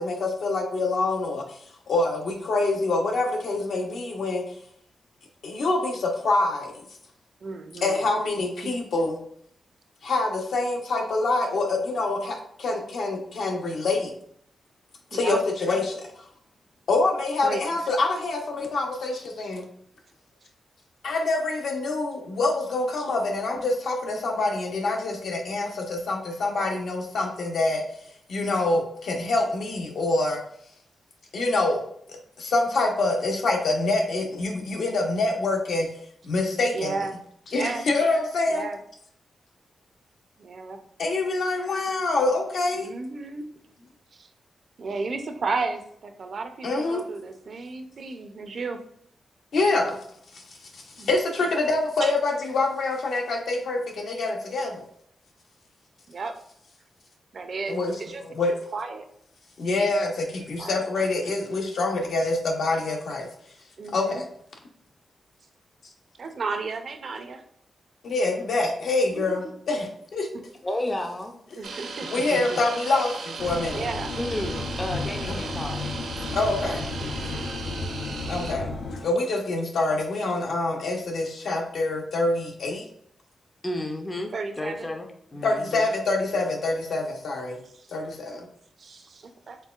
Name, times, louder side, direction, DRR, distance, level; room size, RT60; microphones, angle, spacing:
voice 1, 0.0-1.6 1.9-4.4 5.4-6.8 7.8-9.2 10.0-14.1 15.1-16.0 16.9-19.6 21.0-27.8 28.3-30.4 31.3-31.8 32.1-35.9 36.2-37.0 37.5-38.7 41.0-42.9 46.6-47.0 49.5-50.0 50.3-50.4 50.7-54.8 57.7-58.0 58.2-58.5 59.6-63.3 63.9-64.3 68.0-70.3 72.1-73.9 75.3-75.4 76.3-76.9 78.3-78.7 79.0-82.8 85.4-87.6 87.9-88.5, left 2 dB, 65° left, 1 dB, 0.9 m, -26 dB
voice 2, 7.4-8.0 8.6-8.7 15.1-15.4 17.4-17.7 36.7-37.1 37.5-37.8 38.5-38.8 40.4-40.8 42.7-43.5 44.1-44.3 44.8-48.8 51.0-51.1 52.0-52.1 56.1-56.3 57.3-58.2 58.7-59.1 60.6-60.9 63.8-64.2 66.2-67.4 69.0-69.5 70.3-70.4 71.6-72.1 73.7-74.1 77.0-77.1 84.3-84.9 87.8-88.1 88.8-89.6, right 4 dB, 45° right, 6 dB, 0.4 m, -33 dB
voice 3, 70.6-71.3 72.3-72.6 74.2-75.8 77.3-77.5 78.6-78.7 83.6-85.9, left 1 dB, 15° left, 3 dB, 0.4 m, -32 dB
sound 1, 71.6-78.5, right 4 dB, 80° right, 0.7 m, -37 dB
sound 2, 73.4-79.1, left 3 dB, 85° left, 0.5 m, -33 dB
4.4 x 3.8 x 2.4 m, 0.67 s
wide cardioid pair, 175°, 0 cm